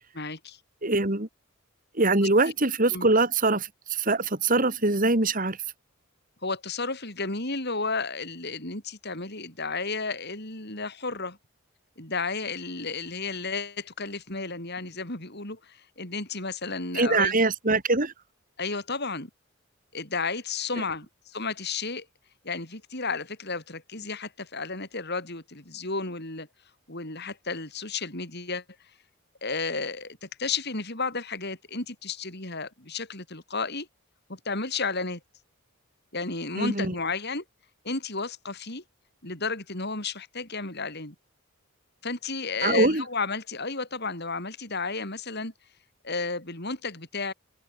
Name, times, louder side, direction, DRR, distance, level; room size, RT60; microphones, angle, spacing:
voice 1, 0.1-0.6 2.4-2.5 2.9-3.1 6.4-11.4 12.0-17.4 18.6-19.3 19.9-22.1 22.4-26.5 26.9-28.6 29.4-33.9 34.3-35.2 36.1-37.4 37.8-38.8 39.2-41.1 42.0-45.5 46.0-47.3, left 4 dB, 50° left, 6.6 m, -32 dB
voice 2, 0.8-1.3 2.0-5.6 16.9-18.1 36.6-36.9 42.6-43.0, right 2 dB, 40° right, 2.7 m, -23 dB
head